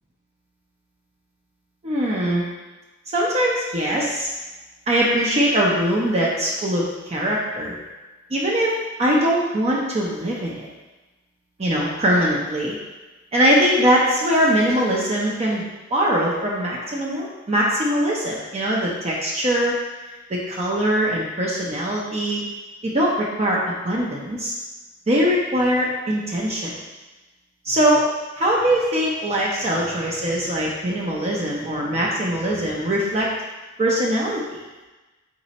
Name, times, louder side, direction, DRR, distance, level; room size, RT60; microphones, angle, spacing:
voice 1, 1.8-2.4 3.1-4.3 4.9-7.7 8.3-8.7 9.0-10.7 11.6-12.8 13.3-19.7 20.3-22.4 22.8-23.6 23.8-24.5 25.1-26.7 27.6-28.0 28.4-33.3 33.8-34.6, equal, 35° right, -4 dB, 0.6 m, -21 dB
4.1 x 2.6 x 4.0 m, 1.2 s
head